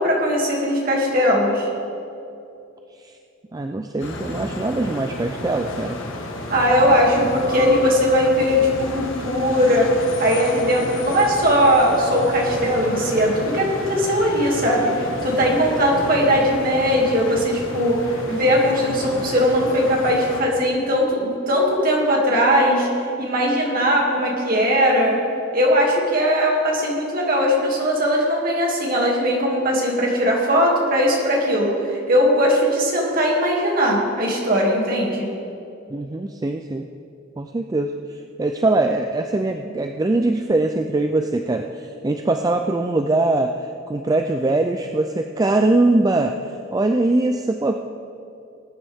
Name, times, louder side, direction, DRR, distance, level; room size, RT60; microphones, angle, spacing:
voice 1, 0.0-1.7 6.5-22.9 23.2-25.2 25.5-35.3, equal, 45° right, -2 dB, 2.4 m, -19 dB
voice 2, 3.5-6.0 35.9-36.9 37.4-47.8, right 2 dB, 20° right, 5 dB, 0.3 m, -22 dB
sound 1, 4.0-20.4, left 1 dB, 70° left, 1.5 m, -32 dB
20.0 x 9.8 x 3.6 m, 2.7 s
head